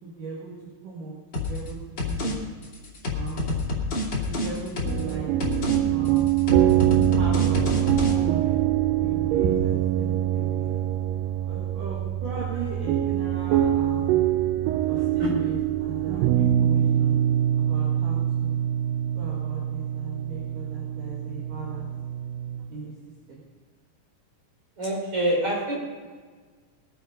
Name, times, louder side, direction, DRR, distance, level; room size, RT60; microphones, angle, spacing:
voice 1, 0.0-0.5 0.8-2.5 3.1-3.7 4.2-5.3 5.9-6.3 7.1-8.7 9.0-10.9 11.4-14.2 14.9-17.2 17.6-18.6 19.2-21.9 22.7-22.9 23.3-23.4, right 3 dB, 65° right, -6 dB, 3.6 m, -38 dB
sound 1, 1.3-1.7 2.0-2.3 2.6-5.1 5.4-5.8 6.1-8.1, left 2 dB, 35° left, 3.0 m, -28 dB
sound 2, 4.8-22.7, right 12 dB, 85° right, 2.3 m, -24 dB
voice 2, 15.0-15.3 24.8-25.7, equal, 40° right, -4 dB, 6.0 m, -26 dB
21.5 x 8.1 x 5.3 m, 1.5 s
omnidirectional pair, 4.1 m